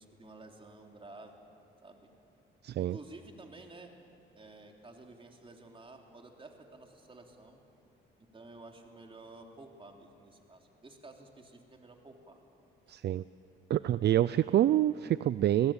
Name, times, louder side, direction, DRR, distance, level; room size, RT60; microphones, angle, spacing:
voice 1, 0.0-1.3 1.8-2.1 2.9-3.9 4.3-7.6 8.3-12.4 12.9-13.0, right 2 dB, 25° right, 2 dB, 3.3 m, -52 dB
voice 2, 2.6-3.0 12.9-13.2 13.7-15.7, right 12 dB, 55° right, 16 dB, 0.5 m, -27 dB
26.0 x 17.0 x 8.9 m, 2.7 s
cardioid pair, 90°, 20 cm